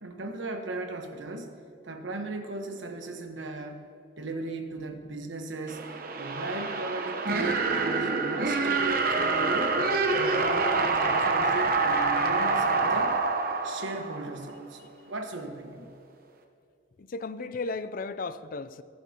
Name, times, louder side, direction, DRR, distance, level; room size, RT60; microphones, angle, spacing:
voice 1, 0.0-3.9 4.2-5.8 6.2-9.7 10.1-13.2 13.6-15.9, right 2 dB, 90° right, 5 dB, 1.2 m, -37 dB
sound 1, 5.7-14.5, right 3 dB, 50° right, 1.0 m, -26 dB
voice 2, 17.0-18.8, left 3 dB, 50° left, 13 dB, 0.4 m, -35 dB
20.5 x 10.5 x 2.9 m, 2.4 s
head